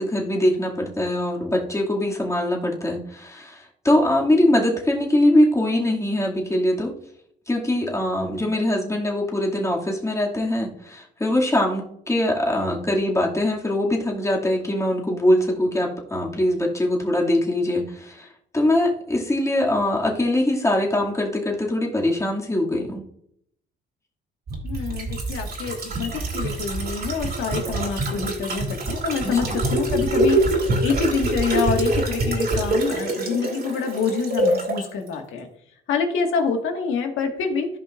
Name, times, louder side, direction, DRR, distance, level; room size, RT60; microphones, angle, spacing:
voice 1, 0.0-7.0 7.5-18.3 18.5-23.0 29.2-29.6, left 1 dB, 15° left, -2 dB, 2.3 m, -22 dB
sound 1, 24.5-34.8 35.1-35.2, right 2 dB, 50° right, 2.7 m, -25 dB
voice 2, 24.6-30.5 30.8-35.5 35.9-37.7, left 5 dB, 85° left, 3 dB, 1.8 m, -26 dB
14.5 x 5.4 x 2.5 m, 0.71 s
cardioid pair, 90°, 20 cm